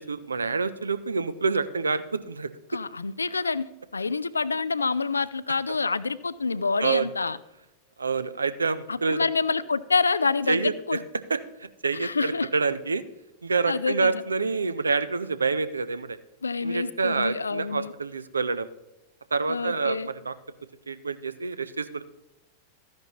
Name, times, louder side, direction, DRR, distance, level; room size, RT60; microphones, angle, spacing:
voice 1, 0.1-2.5 6.8-7.1 8.0-9.3 10.5-11.0 11.3-13.0 13.4-16.2 16.6-18.7 19.3-20.3 20.9-22.0, right 4 dB, 75° right, 14 dB, 0.5 m, -27 dB
voice 2, 2.7-3.6 3.9-7.4 8.9-11.0 12.0-12.5 13.7-14.2 16.4-17.9 19.5-20.1, left 4 dB, 75° left, 17 dB, 0.3 m, -27 dB
13.5 x 10.5 x 3.0 m, 0.95 s
figure-of-eight pair, 90°, 0 cm